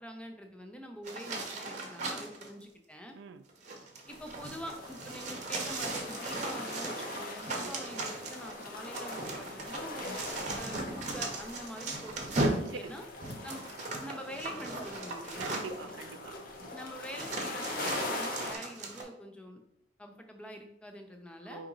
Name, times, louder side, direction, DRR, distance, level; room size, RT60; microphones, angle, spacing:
voice 1, 0.0-3.2 4.1-10.2 10.5-13.0 13.4-13.7 14.0-15.6 16.7-19.6 20.0-21.6, equal, 5° left, 4 dB, 0.5 m, -45 dB
sound 1, 1.0-2.5 3.5-15.9 16.6-16.7 17.1-19.0, right 2 dB, 40° right, 0.8 m, -37 dB
voice 2, 3.1-3.5 7.5-7.8 12.6-13.0 15.4-16.4 21.4-21.7, right 4 dB, 75° right, 11 dB, 0.3 m, -44 dB
sound 2, 4.1-18.6, left 2 dB, 50° left, 0.7 m, -42 dB
4.9 x 2.9 x 3.8 m, 0.77 s
head